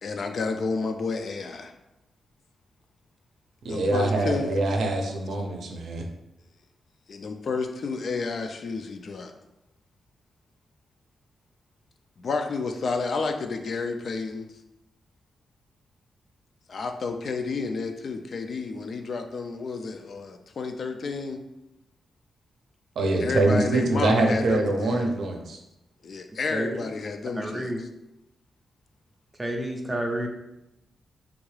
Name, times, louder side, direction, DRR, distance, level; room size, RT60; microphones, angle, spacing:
voice 1, 0.0-1.7 3.7-4.5 7.1-9.3 12.2-14.5 16.7-21.4 23.2-25.1 26.0-27.9, left 4 dB, 55° left, 5 dB, 0.3 m, -31 dB
voice 2, 3.6-6.1 23.0-25.6, right 2 dB, 75° right, 2 dB, 0.5 m, -24 dB
voice 3, 27.4-27.8 29.4-30.3, right 1 dB, 15° right, 2 dB, 0.5 m, -29 dB
3.5 x 2.3 x 3.2 m, 0.91 s
wide cardioid pair, 130°, 0 cm